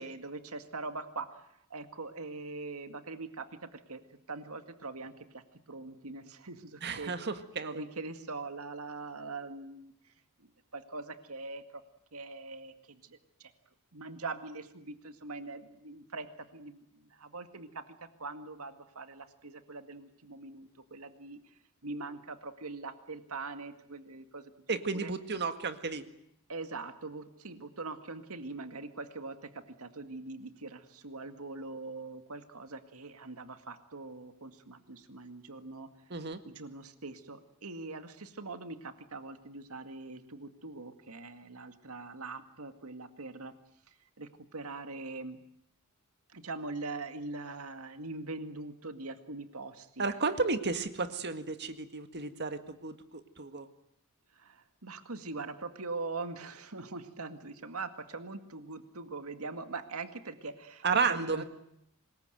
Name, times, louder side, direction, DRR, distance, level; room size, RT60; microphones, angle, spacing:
voice 1, 0.0-4.0 4.3-7.1 7.6-10.1 10.4-11.8 12.1-13.5 13.9-21.5 21.8-25.1 26.5-35.9 36.5-43.5 43.9-45.4 46.3-50.1 54.3-61.4, right 3 dB, 80° right, 8 dB, 2.1 m, -42 dB
voice 2, 6.8-7.8 24.7-26.1 36.1-36.4 50.0-53.7 60.8-61.4, right 4 dB, 50° right, 9 dB, 1.9 m, -32 dB
25.5 x 21.0 x 9.2 m, 0.74 s
head